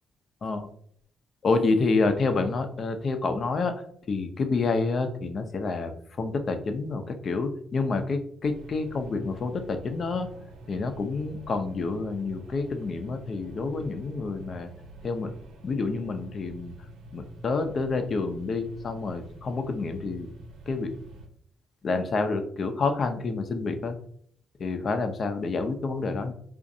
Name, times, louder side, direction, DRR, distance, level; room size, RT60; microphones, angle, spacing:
voice 1, 1.4-3.8 4.1-10.3 10.7-14.7 15.0-15.3 15.6-16.7 17.1-20.3 20.7-20.9 21.8-24.0 24.6-26.3, left 3 dB, 50° left, 7 dB, 0.5 m, -28 dB
sound 1, 8.4-21.3, right 2 dB, 85° right, 0.7 m, -46 dB
4.8 x 2.5 x 2.6 m, 0.63 s
cardioid pair, 90°, 0 cm